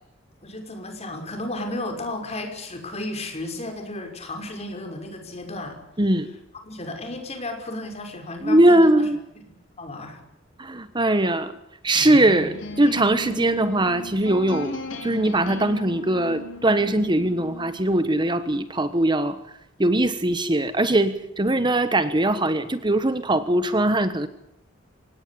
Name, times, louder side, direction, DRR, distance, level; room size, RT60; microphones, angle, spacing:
voice 1, 0.4-5.8 6.6-9.1 9.5-10.2, left 2 dB, 35° left, 5 dB, 5.7 m, -33 dB
voice 2, 8.4-9.2 10.6-11.5 11.8-14.8 15.0-19.4 19.8-24.3, right 1 dB, 25° right, 11 dB, 1.2 m, -21 dB
sound 1, 11.9-17.8, left 1 dB, 70° left, 4.7 m, -36 dB
25.0 x 19.5 x 8.5 m, 0.81 s
head